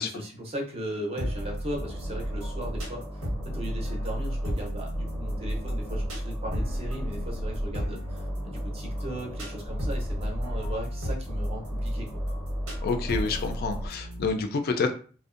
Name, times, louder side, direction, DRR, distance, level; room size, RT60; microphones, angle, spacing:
voice 1, 0.0-12.2, equal, 30° right, 0 dB, 0.6 m, -37 dB
sound 1, 1.2-14.3, equal, 90° right, 1.1 m, -34 dB
sound 2, 1.8-4.6 4.9-7.7 8.1-10.8 11.3-13.9, equal, 10° left, 0.7 m, -34 dB
voice 2, 12.8-14.9, left 4 dB, 45° left, 6 dB, 0.3 m, -28 dB
2.5 x 2.1 x 2.4 m, 0.40 s
head